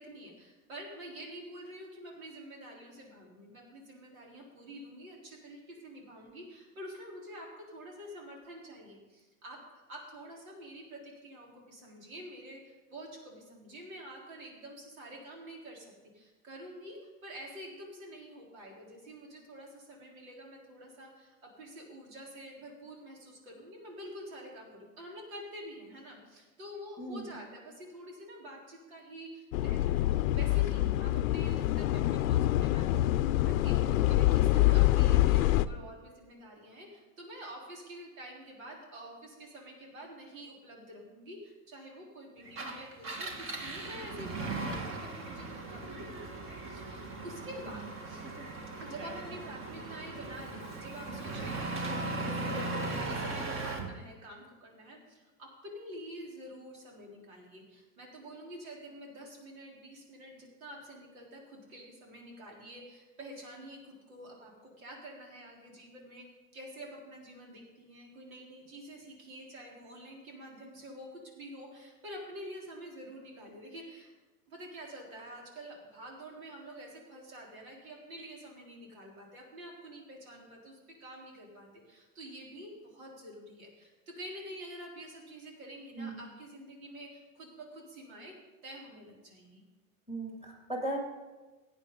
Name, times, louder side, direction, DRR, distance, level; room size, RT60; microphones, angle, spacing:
voice 1, 0.0-9.6 9.9-30.0 30.3-48.2 48.8-66.3 66.5-74.1 74.5-88.4 88.6-89.6, right 1 dB, 85° right, -1 dB, 4.0 m, -48 dB
voice 2, 27.0-27.4 47.7-47.9 86.0-86.3 90.1-91.0, right 1 dB, 15° right, 0 dB, 2.7 m, -38 dB
sound 1, 29.5-35.7, left 15 dB, 80° left, 0.6 m, -26 dB
Engine, 42.5-53.9, right 2 dB, 30° right, 1.6 m, -38 dB
16.5 x 9.0 x 3.9 m, 1.2 s
supercardioid pair, 120°, 40 cm